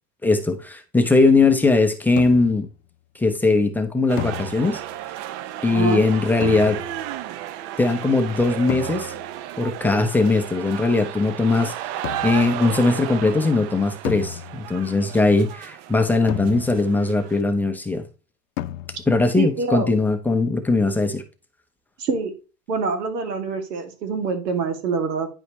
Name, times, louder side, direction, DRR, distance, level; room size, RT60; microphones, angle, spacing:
voice 1, 0.2-2.7 3.2-4.8 5.6-6.8 7.8-9.1 9.6-18.0 19.1-21.2, left 3 dB, 5° left, 0.6 m, -20 dB
sound 1, 2.2-2.7 4.2-5.0 6.4-7.2 8.7-9.4 12.0-12.6 14.0-14.9 16.3-17.1 18.6-19.3, left 13 dB, 55° left, 0.7 m, -33 dB
sound 2, 4.1-17.4, right 13 dB, 45° right, 0.6 m, -34 dB
voice 2, 5.7-6.0 19.4-19.9 22.0-22.3 22.7-25.3, right 4 dB, 85° right, 2.4 m, -25 dB
9.8 x 5.0 x 3.0 m
supercardioid pair, 135°, 48 cm